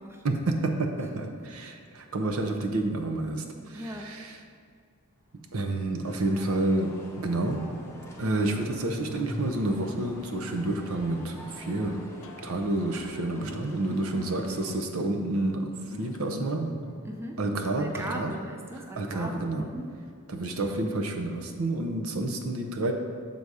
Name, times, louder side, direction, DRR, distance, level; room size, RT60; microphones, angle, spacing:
voice 1, 0.2-4.3 5.5-7.7 8.2-12.0 12.4-16.7 17.4-18.3 19.0-19.7 20.3-22.9, right 2 dB, 70° right, 4 dB, 0.7 m, -29 dB
voice 2, 3.7-4.1 17.0-17.4 17.8-19.9, equal, 10° right, 2 dB, 0.3 m, -39 dB
sound 1, 5.1-15.3 16.7-18.6 18.9-20.6, equal, 25° right, 1.7 m, -47 dB
sound 2, 6.0-14.8, left 1 dB, 10° left, 0.7 m, -48 dB
sound 3, 12.2-19.6, left 2 dB, 65° left, 0.5 m, -46 dB
6.8 x 4.0 x 4.8 m, 2.3 s
head